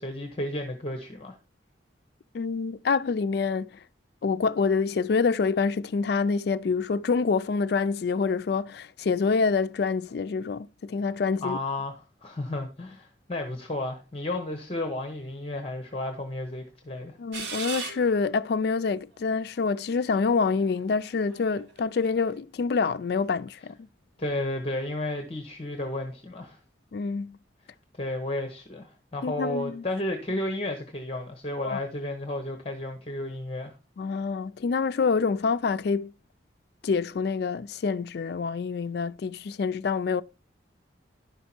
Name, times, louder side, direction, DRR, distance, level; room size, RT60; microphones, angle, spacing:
voice 1, 0.0-1.4 11.4-17.2 24.2-26.6 27.9-33.7, left 1 dB, 30° left, 0.9 m, -32 dB
voice 2, 2.3-3.7 4.2-11.6 17.2-23.9 26.9-27.4 29.2-29.8 31.6-31.8 34.0-36.1 36.8-40.2, left 5 dB, 55° left, 0.3 m, -26 dB
sound 1, 17.3-18.5 19.2-19.3 20.1-22.4, right 5 dB, 70° right, 1.4 m, -39 dB
11.0 x 5.5 x 4.3 m
head